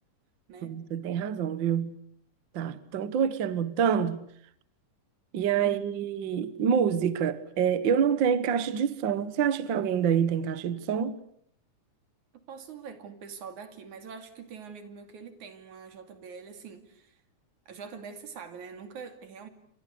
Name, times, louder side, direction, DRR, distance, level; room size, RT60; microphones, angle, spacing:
voice 1, 0.6-1.9 2.5-4.2 5.3-11.1, right 8 dB, 55° right, 1.4 m, -27 dB
voice 2, 5.6-6.1 12.3-17.2 17.7-19.5, right 6 dB, 75° right, 3.9 m, -44 dB
28.5 x 26.0 x 6.6 m
omnidirectional pair, 3.5 m